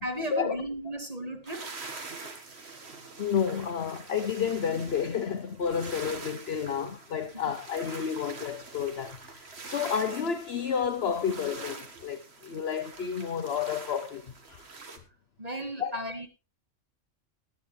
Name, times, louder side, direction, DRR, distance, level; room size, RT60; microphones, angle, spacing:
voice 1, 0.0-1.6 15.4-16.3, equal, 30° right, 2.1 m, -35 dB
sound 1, 1.5-15.0, right 4 dB, 55° right, 1.9 m, -45 dB
voice 2, 3.2-14.7 15.8-16.0, left 7 dB, 60° left, 1.0 m, -31 dB
18.5 x 9.5 x 3.2 m
omnidirectional pair, 1.3 m